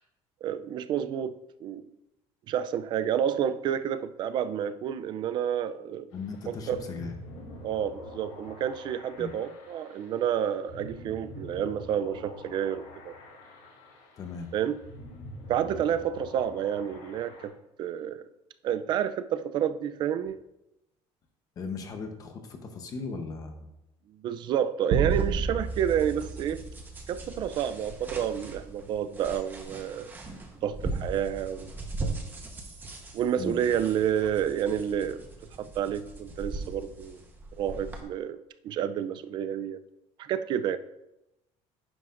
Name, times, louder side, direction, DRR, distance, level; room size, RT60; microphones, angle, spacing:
voice 1, 0.4-1.9 2.5-6.1 6.5-6.8 7.6-13.1 14.5-14.8 15.5-17.5 17.8-18.2 18.6-20.4 24.1-26.6 27.1-30.1 30.6-31.7 32.0-32.1 33.1-35.2 35.6-37.2 37.5-38.4 38.6-39.8 40.2-40.8, right 9 dB, 40° right, 12 dB, 0.5 m, -29 dB
sound 1, 6.1-17.5, left 1 dB, 80° left, 3.8 m, -46 dB
voice 2, 6.1-7.2 9.2-9.3 14.2-14.5 21.6-23.7 33.4-33.6, left 4 dB, 30° left, 5 dB, 0.9 m, -37 dB
sound 2, 24.9-27.5, right 6 dB, 60° right, 1.0 m, -30 dB
sound 3, 25.1-38.0, right 2 dB, 15° right, 1.1 m, -40 dB
11.0 x 10.0 x 2.6 m, 0.89 s
cardioid pair, 180°, 12 cm